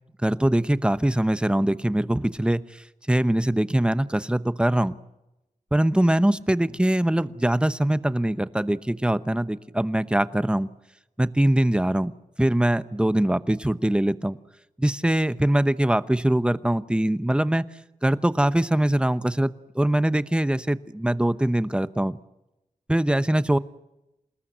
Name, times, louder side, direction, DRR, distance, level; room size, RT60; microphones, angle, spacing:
voice 1, 0.2-2.6 3.1-5.0 5.7-10.7 11.2-12.1 12.4-14.4 14.8-17.6 18.0-22.2 22.9-23.6, right 1 dB, 5° right, 13 dB, 0.9 m, -22 dB
27.0 x 19.5 x 8.0 m, 0.92 s
wide cardioid pair, 85°, 14 cm